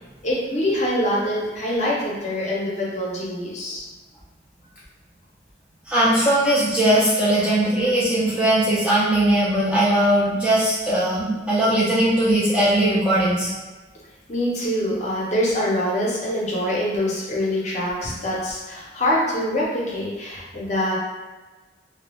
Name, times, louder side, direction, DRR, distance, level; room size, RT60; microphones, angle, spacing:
voice 1, 0.2-3.8 6.4-6.6 7.5-7.6 14.3-20.9, left 1 dB, 35° left, -5 dB, 0.6 m, -24 dB
voice 2, 5.9-13.5, right 1 dB, 5° right, -9 dB, 0.4 m, -19 dB
2.3 x 2.1 x 2.9 m, 1.3 s
head